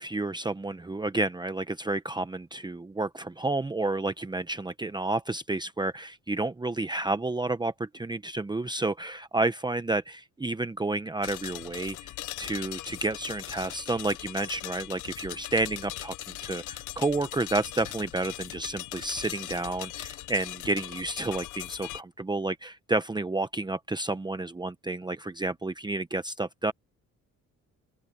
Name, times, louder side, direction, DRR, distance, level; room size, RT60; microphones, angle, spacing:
voice 1, 0.0-12.1 12.4-26.7, right 2 dB, 15° right, 0.9 m, -30 dB
sound 1, 11.2-22.0, left 15 dB, 80° left, 0.7 m, -40 dB
open air
cardioid pair, 90°, 30 cm